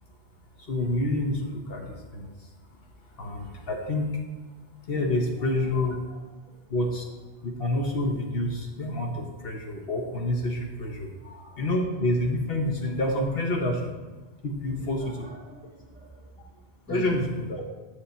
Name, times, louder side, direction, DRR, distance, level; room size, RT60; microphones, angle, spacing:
voice 1, 0.6-2.5 3.2-4.2 4.9-6.0 6.7-7.1 7.4-11.1 11.6-13.9 14.4-15.3 16.9-17.6, left 1 dB, 70° left, 1 dB, 1.2 m, -28 dB
voice 2, 11.2-11.7 15.0-16.3 16.9-17.2, equal, 10° right, -3 dB, 1.7 m, -42 dB
8.1 x 6.5 x 4.2 m, 1.3 s
omnidirectional pair, 1.1 m